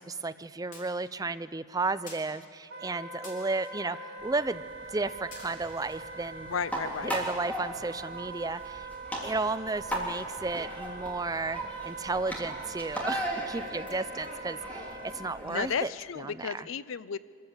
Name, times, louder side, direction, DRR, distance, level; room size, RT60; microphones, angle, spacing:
voice 1, 0.0-4.6 4.9-6.5 7.0-8.9 9.2-16.7, right 3 dB, 15° right, 12 dB, 0.4 m, -33 dB
sound 1, 0.7-1.1 2.1-2.3 3.2-3.7 4.8-4.9 5.3-6.0, left 3 dB, 40° left, 3.8 m, -49 dB
Wind instrument woodwind instrument, 2.7-15.4, right 3 dB, 50° right, 1.4 m, -43 dB
sound 2, 4.2-15.7, right 1 dB, 5° left, 2.9 m, -38 dB
voice 2, 6.5-7.1 15.4-17.2, left 6 dB, 65° left, 17 dB, 0.5 m, -33 dB
24.0 x 14.0 x 8.0 m, 2.2 s
head